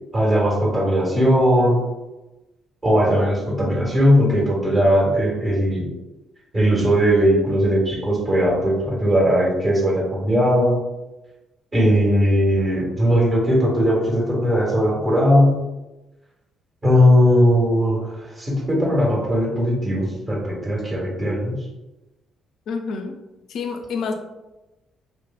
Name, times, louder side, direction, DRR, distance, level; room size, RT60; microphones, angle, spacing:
voice 1, 0.1-1.8 2.8-5.9 6.5-10.8 11.7-15.6 16.8-21.6, equal, 30° right, -4 dB, 1.2 m, -18 dB
voice 2, 22.7-23.2 23.5-24.2, left 4 dB, 60° left, 5 dB, 0.3 m, -28 dB
2.6 x 2.6 x 2.2 m, 1.0 s
figure-of-eight pair, 45°, 0 cm